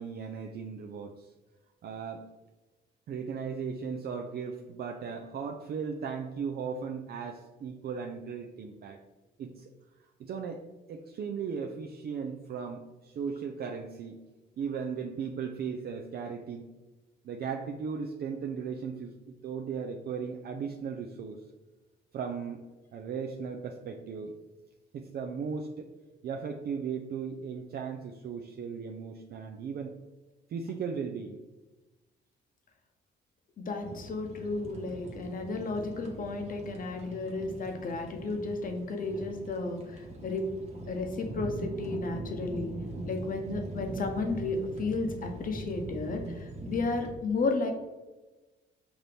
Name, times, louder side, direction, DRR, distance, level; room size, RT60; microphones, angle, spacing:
voice 1, 0.0-1.3 1.8-2.2 3.1-9.0 9.4-9.7 10.2-14.2 14.6-16.7 17.2-21.4 22.1-22.6 22.9-24.3 24.9-25.9 26.2-30.0 30.5-31.4, right 6 dB, 55° right, 3 dB, 0.4 m, -37 dB
voice 2, 33.6-40.4 40.9-42.7 43.0-47.7, left 3 dB, 45° left, 4 dB, 0.8 m, -33 dB
sound 1, 33.8-47.1, right 1 dB, 35° right, 1.1 m, -42 dB
5.8 x 2.7 x 3.3 m, 1.1 s
cardioid pair, 90°, 20 cm